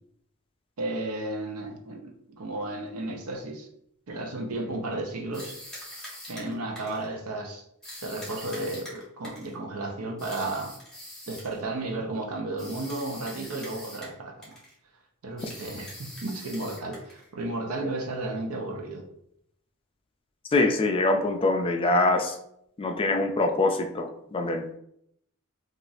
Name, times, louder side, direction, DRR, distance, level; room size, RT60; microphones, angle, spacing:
voice 1, 0.8-3.7 4.1-5.6 6.3-7.6 8.0-10.8 11.3-14.6 15.2-19.1, right 2 dB, 85° right, 2 dB, 0.6 m, -33 dB
sound 1, 5.3-7.1 7.8-9.5 10.2-11.6 12.6-14.2 14.4-14.7 15.4-17.3, left 1 dB, 5° left, 1.3 m, -43 dB
voice 2, 20.5-22.4 22.8-24.7, left 2 dB, 25° left, 4 dB, 0.3 m, -24 dB
4.0 x 2.4 x 2.3 m, 0.72 s
head